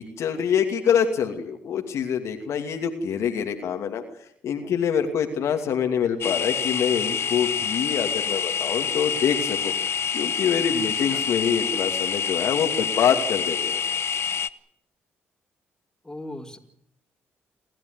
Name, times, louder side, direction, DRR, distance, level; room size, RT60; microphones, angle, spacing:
voice 1, 0.0-4.0 4.4-9.7 10.1-13.8, left 7 dB, 70° left, 4 dB, 2.6 m, -25 dB
sound 1, 6.2-14.5, left 7 dB, 55° left, 0.9 m, -27 dB
voice 2, 10.8-11.2 16.0-16.6, left 1 dB, 10° left, 2 dB, 4.5 m, -38 dB
28.5 x 12.0 x 9.7 m, 0.69 s
supercardioid pair, 60°, 5 cm